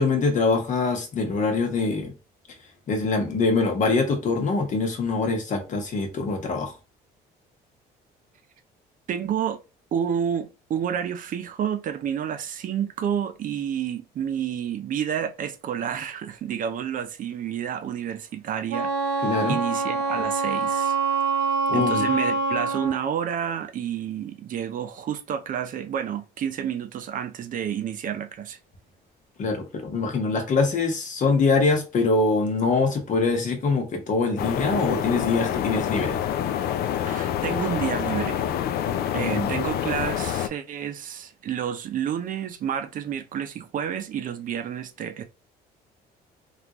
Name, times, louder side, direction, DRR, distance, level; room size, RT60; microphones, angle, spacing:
voice 1, 0.0-2.1 2.9-6.7 19.2-19.6 21.7-22.1 29.4-36.2 39.2-39.6, left 3 dB, 50° left, 1.1 m, -24 dB
voice 2, 9.1-9.6 9.9-21.0 21.7-28.6 37.1-38.4 38.9-45.2, right 9 dB, 50° right, 0.6 m, -30 dB
Wind instrument woodwind instrument, 18.7-23.0, right 3 dB, 85° right, 0.8 m, -25 dB
sound 1, 34.4-40.5, left 10 dB, 65° left, 0.4 m, -27 dB
3.5 x 2.5 x 3.0 m
cardioid pair, 110°, 17 cm